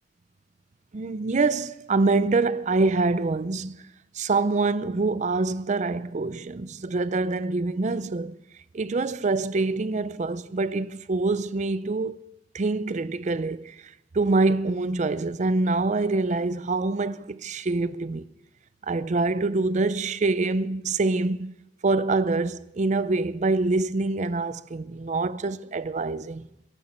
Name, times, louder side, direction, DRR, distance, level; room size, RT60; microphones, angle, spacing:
voice 1, 0.9-8.4 8.7-12.2 12.5-18.3 18.8-21.5 21.8-26.4, right 3 dB, 40° right, 0.5 m, -25 dB
22.5 x 11.5 x 4.3 m
head